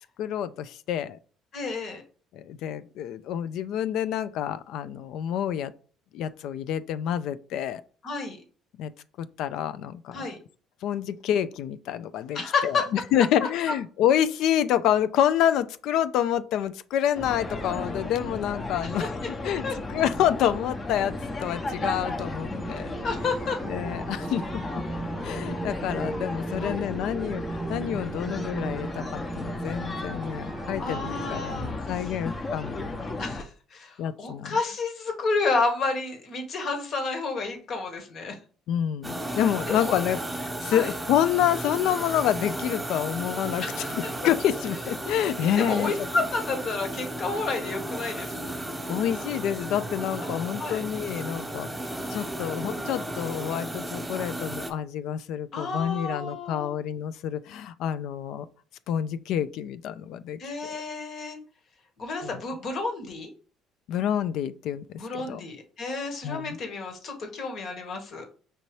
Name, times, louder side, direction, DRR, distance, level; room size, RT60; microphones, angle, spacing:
voice 1, 0.2-1.2 2.3-5.7 6.1-7.8 8.8-8.9 9.2-10.3 10.8-19.1 19.4-21.2 21.4-22.9 23.6-24.8 25.2-33.0 34.0-34.6 38.7-43.6 43.9-45.9 48.9-51.7 52.1-58.5 58.9-60.8 62.2-62.3 63.9-65.4 66.2-66.6, left 10 dB, 75° left, 0.3 m, -28 dB
voice 2, 1.5-2.0 8.0-8.4 10.1-10.4 12.3-12.8 18.8-19.3 19.6-19.8 23.0-23.6 26.6-26.9 30.8-32.1 33.2-38.4 39.7-40.0 40.7-40.9 43.6-44.1 45.6-48.6 50.2-50.8 55.5-56.8 60.4-61.4 62.0-63.3 65.0-68.3, left 3 dB, 55° left, 1.3 m, -31 dB
sound 1, 17.1-33.4, left 2 dB, 30° left, 0.8 m, -34 dB
sound 2, 21.6-31.5, right 3 dB, 40° right, 0.5 m, -38 dB
sound 3, 39.0-54.7, right 1 dB, 10° right, 1.1 m, -34 dB
5.4 x 2.7 x 3.1 m
supercardioid pair, 85°, 0 cm